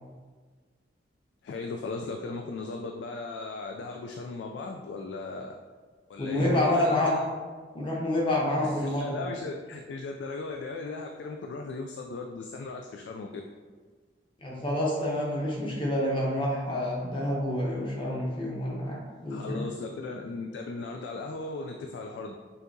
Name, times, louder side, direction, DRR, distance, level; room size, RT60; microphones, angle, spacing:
voice 1, 1.4-5.5 6.1-7.3 8.6-13.4 19.3-22.3, left 3 dB, 75° left, 2 dB, 0.3 m, -37 dB
voice 2, 6.2-7.1 7.7-9.1 14.4-19.7, left 1 dB, 30° left, -3 dB, 0.9 m, -28 dB
5.6 x 2.8 x 2.6 m, 1.5 s
head